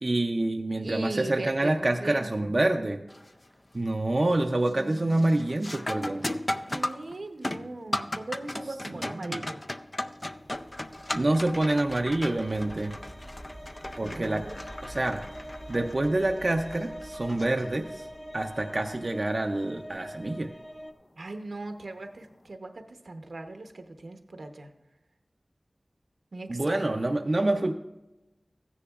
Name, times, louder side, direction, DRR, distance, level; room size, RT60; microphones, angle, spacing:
voice 1, 0.0-3.1 3.7-6.4 8.9-9.5 11.1-13.0 14.0-14.5 14.8-15.3 15.7-18.1 18.3-20.5 26.5-27.7, right 2 dB, 50° right, 4 dB, 0.5 m, -27 dB
voice 2, 0.8-2.5 4.7-5.6 6.7-9.6 14.0-14.6 21.1-24.7 26.3-26.8, right 2 dB, 80° right, 6 dB, 0.9 m, -39 dB
sound 1, 3.1-3.5 3.9-4.3 4.7-18.2 20.7-20.8 21.6-21.8, left 1 dB, 35° left, 0.4 m, -37 dB
sound 2, 10.2-20.9, equal, 5° left, 0.8 m, -44 dB
14.5 x 10.0 x 2.4 m, 1.0 s
wide cardioid pair, 50°, 0 cm